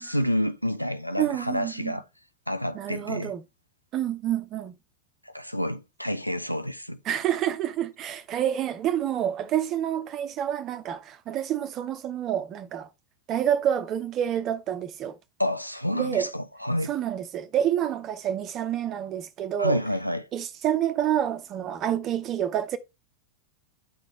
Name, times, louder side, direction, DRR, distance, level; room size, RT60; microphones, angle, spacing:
voice 1, 0.0-2.0 2.5-3.3 5.2-7.0 15.4-16.9 19.6-20.3, equal, 90° left, 0.6 m, -29 dB
voice 2, 1.2-1.9 2.7-3.4 3.9-4.8 7.0-12.9 13.3-15.2 15.9-16.3 16.8-19.8 20.3-22.8, right 10 dB, 35° right, 0.9 m, -28 dB
11.0 x 4.2 x 3.2 m
figure-of-eight pair, 90°, 0 cm